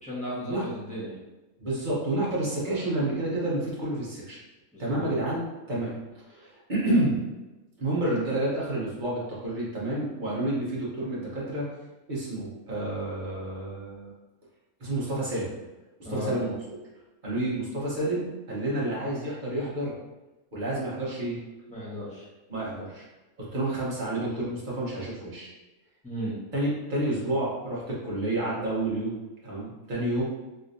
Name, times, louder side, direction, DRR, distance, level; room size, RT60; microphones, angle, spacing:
voice 1, 0.0-1.1 4.7-5.2 5.7-5.9 16.0-16.4 21.7-22.3 26.0-26.4, equal, 5° left, -9 dB, 1.0 m, -35 dB
voice 2, 1.6-4.4 4.8-6.0 6.3-7.2 7.8-11.6 12.1-14.1 14.8-15.5 16.1-16.8 17.2-19.9 20.5-21.4 22.5-23.0 23.4-25.5 26.5-29.1 29.4-30.2, right 1 dB, 35° right, -7 dB, 1.1 m, -29 dB
3.2 x 3.0 x 2.6 m, 1.1 s
omnidirectional pair, 1.5 m